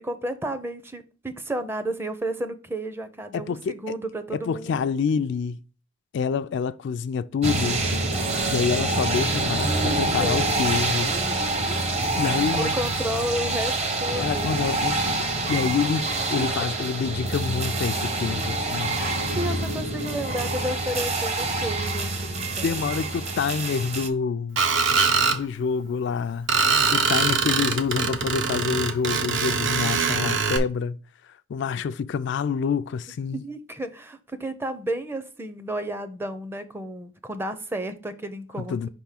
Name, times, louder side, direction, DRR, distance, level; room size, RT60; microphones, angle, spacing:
voice 1, 0.0-4.9 9.6-10.4 11.1-11.8 12.5-14.5 16.4-16.5 19.0-22.8 27.4-27.5 33.4-38.9, right 1 dB, 10° right, 0.5 m, -32 dB
voice 2, 3.3-3.8 4.3-5.6 6.1-7.8 8.5-11.1 12.2-12.8 14.1-18.9 22.6-24.7 25.3-26.5 26.9-31.0 31.5-33.4 38.6-38.9, left 6 dB, 60° left, 0.3 m, -27 dB
sound 1, 7.4-24.1, right 2 dB, 35° right, 0.8 m, -26 dB
Screech, 24.6-25.4 26.5-30.6, right 5 dB, 65° right, 0.8 m, -23 dB
5.4 x 3.5 x 5.7 m
head